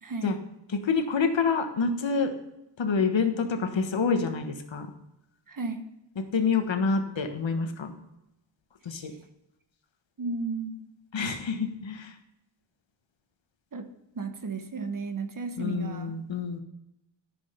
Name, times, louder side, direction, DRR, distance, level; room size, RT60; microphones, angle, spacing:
voice 1, 0.0-0.4 5.5-5.9 10.2-10.8 13.7-13.9 14.1-16.1, right 4 dB, 45° right, 6 dB, 1.1 m, -33 dB
voice 2, 0.7-2.3 2.8-4.9 6.2-7.9 8.8-9.1 11.1-12.1 15.6-16.6, left 5 dB, 70° left, 7 dB, 1.3 m, -27 dB
13.5 x 6.3 x 5.6 m, 0.90 s
wide cardioid pair, 175°, 47 cm